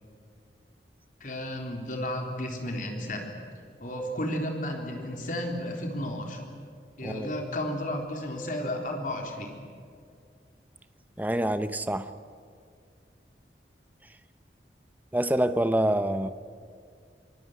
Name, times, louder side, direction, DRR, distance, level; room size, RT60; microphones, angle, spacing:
voice 1, 1.2-3.3 3.8-6.4 7.0-9.6, left 1 dB, 50° left, 2 dB, 3.9 m, -33 dB
voice 2, 11.2-12.1 15.1-16.3, right 1 dB, 10° right, 11 dB, 0.7 m, -26 dB
24.0 x 20.5 x 9.4 m, 2.2 s
head